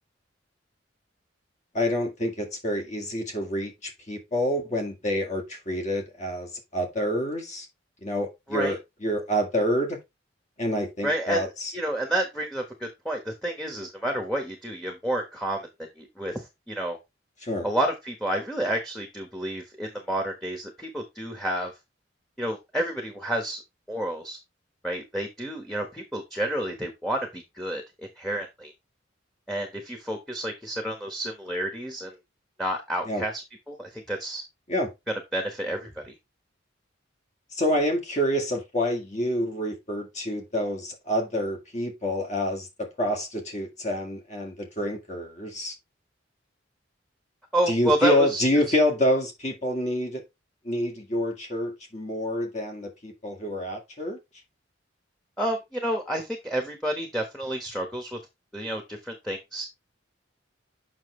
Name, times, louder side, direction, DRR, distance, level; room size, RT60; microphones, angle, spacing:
voice 1, 1.7-7.7 8.0-10.0 10.6-11.7 17.4-17.7 33.1-33.2 34.7-34.9 37.5-45.7 47.7-50.2 50.6-54.2, equal, 35° left, 1.9 m, -27 dB
voice 2, 11.0-15.7 16.0-17.0 17.6-21.7 22.4-23.6 23.9-24.4 24.8-28.7 29.5-32.2 32.6-34.4 35.1-36.1 47.5-48.4 55.4-58.2 58.5-59.6, right 1 dB, 5° left, 1.2 m, -30 dB
7.4 x 6.0 x 3.2 m
head